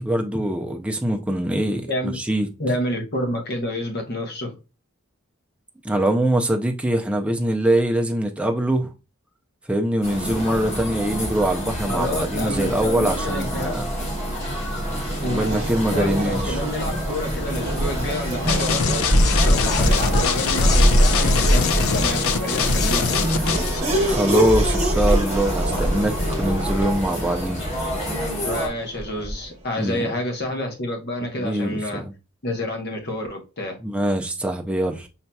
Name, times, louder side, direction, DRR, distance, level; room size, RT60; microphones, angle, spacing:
voice 1, 0.0-1.9 2.2-2.5 5.8-8.9 9.7-13.9 15.3-16.6 24.1-27.6 29.8-30.1 31.4-32.1 33.8-35.1, right 1 dB, 5° right, 0.4 m, -23 dB
voice 2, 1.9-2.2 2.6-4.5 11.9-13.7 15.2-15.5 15.9-19.1 19.4-23.3 28.4-32.0 32.4-33.8, left 1 dB, 45° left, 1.0 m, -29 dB
sound 1, 10.0-28.7, equal, 30° left, 1.3 m, -29 dB
Race car auto racing / Accelerating revving vroom, 14.0-29.6, right 1 dB, 30° right, 1.1 m, -24 dB
sound 2, 18.5-23.8, left 6 dB, 70° left, 0.4 m, -23 dB
5.7 x 2.7 x 2.2 m
head